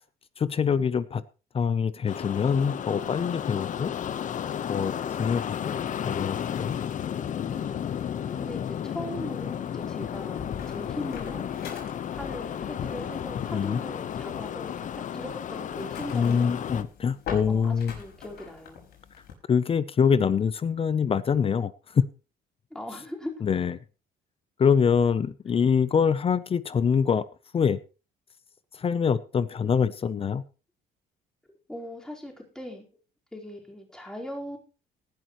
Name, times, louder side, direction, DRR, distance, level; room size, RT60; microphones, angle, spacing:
voice 1, 0.4-1.2 1.5-3.9 4.7-6.7 13.5-13.8 16.1-17.9 19.5-22.0 23.4-23.8 24.6-27.2 27.5-27.8 28.7-30.4, left 6 dB, 35° left, 16 dB, 0.7 m, -25 dB
sound 1, 2.1-16.8, left 9 dB, 50° left, 1.0 m, -33 dB
voice 2, 7.5-8.0 8.3-11.5 12.1-16.6 17.5-18.9 22.7-23.3 31.7-32.8 33.3-34.6, left 1 dB, 5° left, -1 dB, 4.4 m, -40 dB
sound 2, 10.1-19.3, left 7 dB, 70° left, 5.2 m, -44 dB
18.5 x 11.5 x 3.1 m, 0.33 s
cardioid pair, 110°, 17 cm